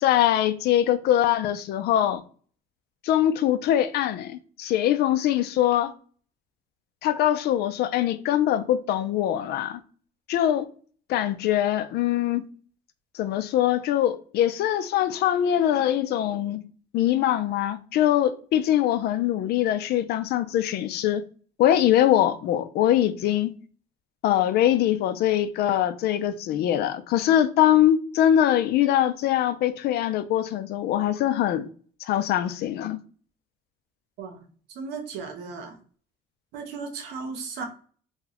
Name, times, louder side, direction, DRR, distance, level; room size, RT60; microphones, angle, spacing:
voice 1, 0.0-2.2 3.0-5.9 7.0-9.8 10.3-10.7 11.1-12.5 13.1-16.6 16.9-21.2 21.6-23.5 24.2-31.7 32.0-33.0, left 11 dB, 70° left, 0.5 m, -23 dB
voice 2, 34.7-35.8 36.5-37.6, right 5 dB, 85° right, 0.8 m, -35 dB
2.9 x 2.3 x 3.9 m
cardioid pair, 110°, 17 cm